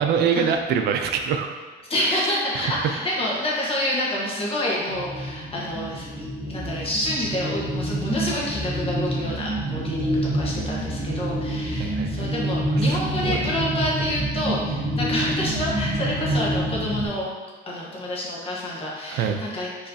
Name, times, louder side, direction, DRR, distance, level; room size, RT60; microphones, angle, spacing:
voice 1, 0.0-1.5 2.0-2.3 2.5-2.7 9.6-9.8 11.8-12.3 12.8-13.4 19.1-19.4, right 7 dB, 75° right, 5 dB, 0.4 m, -25 dB
voice 2, 1.9-17.3 17.7-19.9, left 1 dB, 35° left, -4 dB, 1.2 m, -28 dB
sound 1, 4.9-17.1, right 1 dB, ahead, 1.2 m, -27 dB
5.5 x 3.1 x 2.7 m, 1.3 s
cardioid pair, 110°, 17 cm